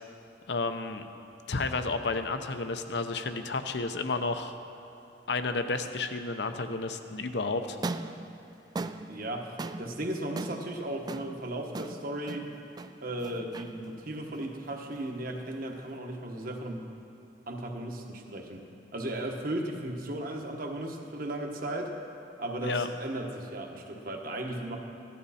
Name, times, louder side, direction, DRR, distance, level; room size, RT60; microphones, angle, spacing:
voice 1, 0.5-1.1 1.5-4.6 5.3-7.8 22.6-22.9, left 3 dB, 65° left, 8 dB, 0.7 m, -31 dB
large ball bounce, 7.7-16.0, right 3 dB, 20° right, 0.3 m, -41 dB
voice 2, 9.1-9.5 9.8-12.5 13.0-16.8 17.5-18.6 18.9-21.9 22.4-24.8, right 1 dB, 50° right, 2 dB, 1.3 m, -36 dB
15.0 x 12.0 x 4.3 m, 2.9 s
head